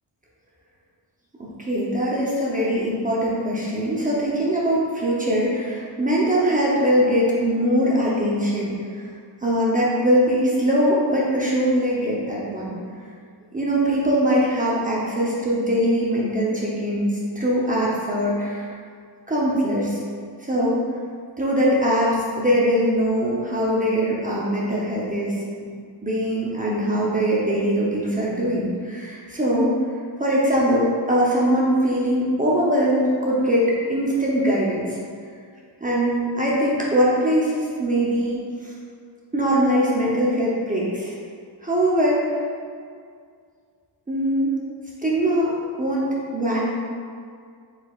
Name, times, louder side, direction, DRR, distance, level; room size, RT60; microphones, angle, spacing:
voice 1, 1.4-9.0 9.4-12.8 13.5-18.7 19.3-20.0 20.4-20.8 21.4-25.3 25.6-25.7 26.0-29.7 30.2-35.0 35.8-38.7 39.3-41.1 41.6-42.3 44.1-44.5 45.0-45.5 45.8-46.7, equal, 20° right, -6 dB, 0.7 m, -22 dB
4.7 x 4.1 x 2.4 m, 2.1 s
wide cardioid pair, 110°, 43 cm